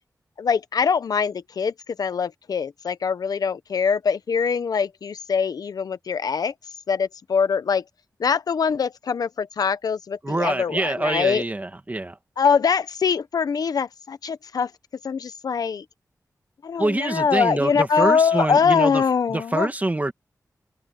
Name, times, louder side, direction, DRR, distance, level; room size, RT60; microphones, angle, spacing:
voice 1, 0.4-6.5 6.9-7.8 8.2-11.4 12.4-14.7 15.0-15.8 16.6-19.7, left 6 dB, 85° left, 0.9 m, -23 dB
voice 2, 10.2-12.2 16.8-19.0 19.3-20.1, right 2 dB, 25° right, 1.7 m, -25 dB
wide cardioid pair, 85°, 6 cm